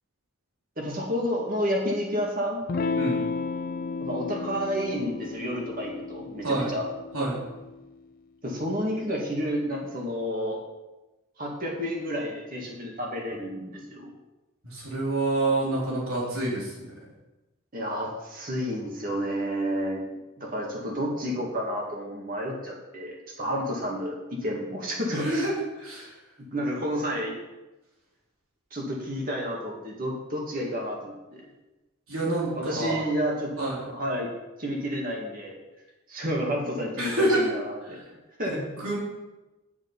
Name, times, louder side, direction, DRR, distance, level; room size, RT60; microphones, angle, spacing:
voice 1, 0.8-2.6 4.0-6.9 8.4-10.6 11.4-14.1 17.7-20.0 20.4-25.5 26.4-27.3 28.7-31.4 32.5-33.5 33.9-34.3 34.6-35.5 36.1-37.8 38.4-38.7, equal, 40° right, -1 dB, 2.2 m, -30 dB
Electric guitar / Strum, 2.7-7.8, left 4 dB, 40° left, 0.4 m, -33 dB
voice 2, 14.6-16.9 25.1-25.5 25.8-26.1 32.1-33.1 33.6-33.9 37.0-37.5 37.8-38.0 38.5-38.6 38.8-39.0, right 2 dB, 80° right, -5 dB, 3.7 m, -27 dB
10.0 x 7.3 x 5.6 m, 1.1 s
head